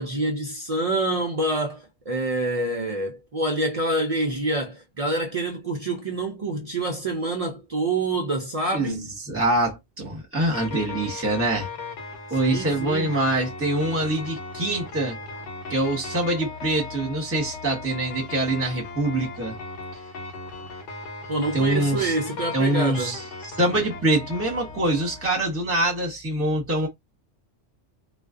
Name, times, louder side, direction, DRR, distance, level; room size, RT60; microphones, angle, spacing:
voice 1, 0.0-9.1 12.4-13.1 21.3-23.2, right 2 dB, 60° right, 0.3 m, -27 dB
voice 2, 8.7-11.7 12.3-15.2 15.7-19.6 21.5-22.1 22.5-23.2 23.6-26.9, right 1 dB, 15° right, 0.9 m, -24 dB
sound 1, 10.5-25.3, left 3 dB, 85° left, 1.1 m, -37 dB
2.4 x 2.2 x 2.4 m
omnidirectional pair, 1.2 m